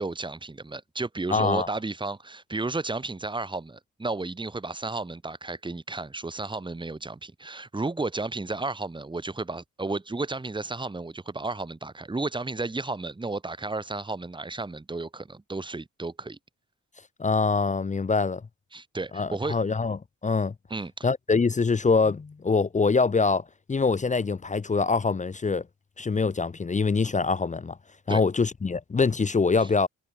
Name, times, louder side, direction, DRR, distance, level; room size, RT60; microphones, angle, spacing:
voice 1, 0.0-16.4 18.7-19.6 20.7-21.1 28.1-28.2 29.6-29.7, right 3 dB, 15° right, 2.2 m, -33 dB
voice 2, 1.3-1.7 17.2-18.4 19.1-20.5 21.0-25.6 26.0-27.8 28.1-29.9, left 4 dB, 25° left, 1.0 m, -24 dB
cardioid pair, 90°, 30 cm